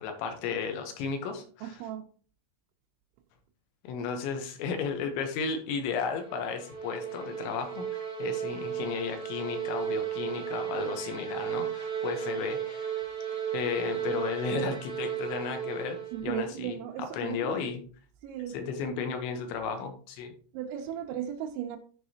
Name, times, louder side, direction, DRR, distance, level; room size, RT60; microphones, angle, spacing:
voice 1, 0.0-1.9 3.8-13.0 13.5-16.8 17.1-17.8 18.5-20.3, left 6 dB, 80° left, 3.3 m, -34 dB
voice 2, 1.6-2.1 16.1-17.6 18.2-18.6 20.5-21.8, right 9 dB, 90° right, 3.1 m, -36 dB
sound 1, 5.8-16.4, right 9 dB, 40° left, 1.1 m, -35 dB
13.0 x 4.7 x 2.8 m
omnidirectional pair, 5.2 m